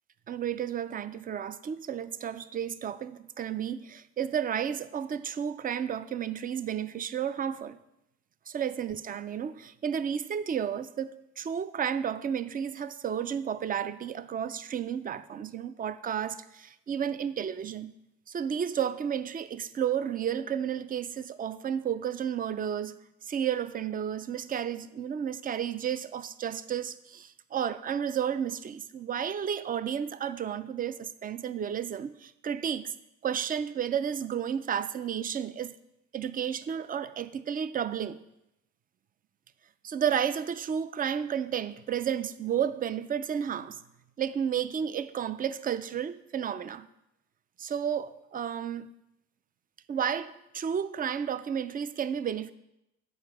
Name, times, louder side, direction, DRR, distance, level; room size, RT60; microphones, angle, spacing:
voice 1, 0.3-7.8 8.5-17.9 18.3-23.0 23.3-32.9 33.2-35.7 36.1-38.2 39.8-43.8 44.2-46.9 47.6-48.9 49.9-52.5, right 8 dB, 30° right, 0.4 m, -32 dB
7.2 x 4.9 x 4.7 m
cardioid pair, 90°, 30 cm